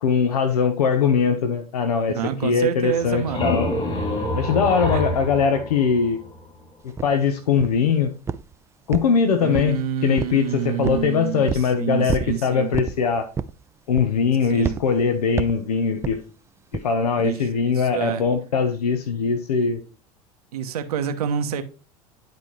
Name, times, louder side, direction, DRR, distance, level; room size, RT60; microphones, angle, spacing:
voice 1, 0.0-3.7 4.4-6.2 7.0-8.1 8.9-9.8 10.0-13.3 13.9-16.2 16.7-19.8, left 6 dB, 75° left, 0.8 m, -21 dB
voice 2, 2.1-3.5 4.9-5.0 9.4-12.7 14.5-14.8 17.2-18.2 20.5-21.6, right 9 dB, 70° right, 0.8 m, -27 dB
sound 1, 2.9-6.6, left 1 dB, 30° left, 2.7 m, -27 dB
sound 2, 7.0-7.1 7.6-7.9 8.3-8.5 8.9-9.8 10.2-10.4 10.8-11.1 11.5-11.7 12.1-12.4 12.7-13.0 13.4-13.6 14.0-14.3 14.6-14.8 15.4-15.6 16.0-16.2 16.7-16.9, right 6 dB, 15° right, 0.3 m, -28 dB
10.5 x 4.3 x 3.1 m
figure-of-eight pair, 75°, 20 cm